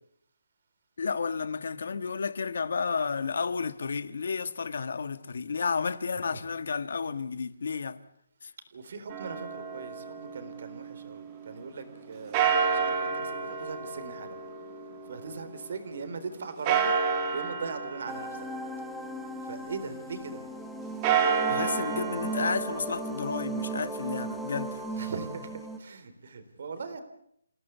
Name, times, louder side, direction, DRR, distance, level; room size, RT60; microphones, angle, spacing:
voice 1, 1.0-8.0 8.4-8.5 21.5-24.8, left 5 dB, 55° left, 1.6 m, -32 dB
voice 2, 6.1-6.4 8.7-14.4 15.1-18.5 19.4-20.4 24.9-27.0, right 4 dB, 45° right, 4.0 m, -40 dB
sound 1, 9.1-11.2 12.3-15.7 16.7-19.6 20.9-24.9, right 6 dB, 15° right, 2.4 m, -31 dB
sound 2, 18.1-25.8, right 3 dB, ahead, 1.0 m, -37 dB
29.0 x 17.0 x 8.4 m
hypercardioid pair, 175°, 0 cm